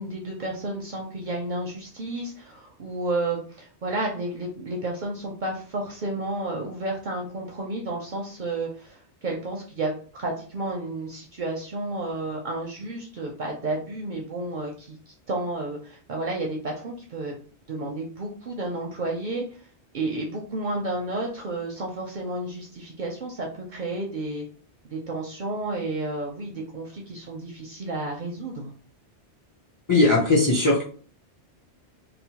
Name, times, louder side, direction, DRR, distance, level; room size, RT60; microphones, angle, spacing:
voice 1, 0.0-17.4 17.7-19.4 19.9-24.5 24.9-28.7, right 2 dB, 60° right, 0 dB, 0.5 m, -31 dB
voice 2, 29.9-30.8, left 2 dB, 25° left, -2 dB, 0.4 m, -19 dB
2.9 x 2.0 x 2.8 m, 0.43 s
omnidirectional pair, 1.1 m